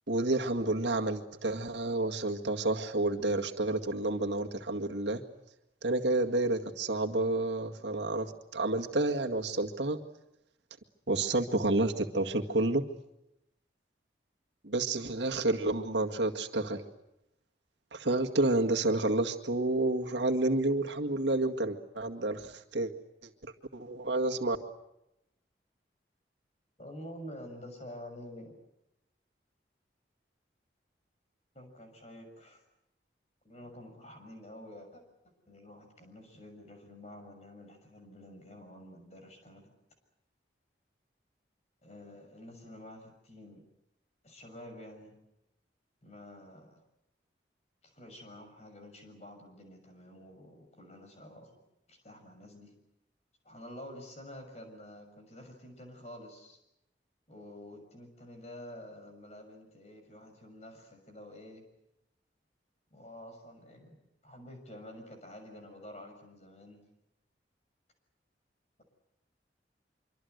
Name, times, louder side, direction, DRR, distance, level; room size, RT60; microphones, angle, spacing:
voice 1, 0.1-5.2 5.8-10.0 11.1-12.8 14.6-16.9 17.9-22.9 23.4-24.6, right 2 dB, 80° right, 3 dB, 2.0 m, -30 dB
voice 2, 26.8-28.6 31.5-32.6 33.4-35.0 35.5-39.7 41.8-43.6 44.2-45.2 46.0-46.8 47.8-51.5 51.9-52.7 53.4-56.6 57.3-61.6 62.9-64.0 64.2-66.9, left 1 dB, 35° left, 4 dB, 6.4 m, -49 dB
25.5 x 25.0 x 8.1 m, 0.86 s
head